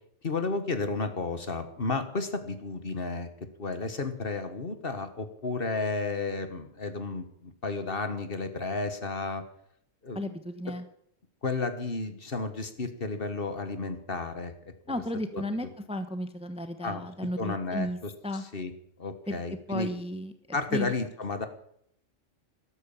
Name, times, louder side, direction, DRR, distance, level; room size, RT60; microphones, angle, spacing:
voice 1, 0.2-3.3 3.6-9.4 10.0-10.2 11.4-14.5 15.3-15.4 16.8-17.1 17.4-18.1 18.5-18.7 19.0-19.9 20.5-21.5, left 3 dB, 50° left, 9 dB, 1.6 m, -32 dB
voice 2, 10.1-10.8 14.9-18.4 19.3-19.4 19.7-20.3 20.7-20.9, equal, 5° right, 9 dB, 1.0 m, -34 dB
13.0 x 13.0 x 7.2 m, 0.69 s
omnidirectional pair, 1.3 m